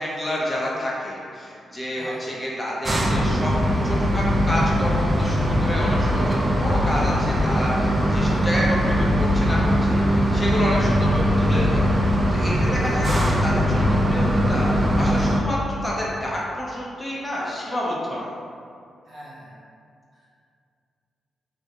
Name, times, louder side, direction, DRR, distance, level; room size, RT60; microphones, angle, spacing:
voice 1, 0.0-3.5 3.8-11.9 12.3-18.3, equal, 20° left, -5 dB, 0.6 m, -29 dB
voice 2, 1.9-2.3 8.2-8.5 12.7-13.1 19.0-19.6 20.1-20.3, equal, 60° right, -9 dB, 0.7 m, -42 dB
sound 1, 2.8-15.4, equal, 30° right, 0.3 m, -21 dB
2.5 x 2.2 x 2.7 m, 2.4 s
cardioid pair, 80°, 0 cm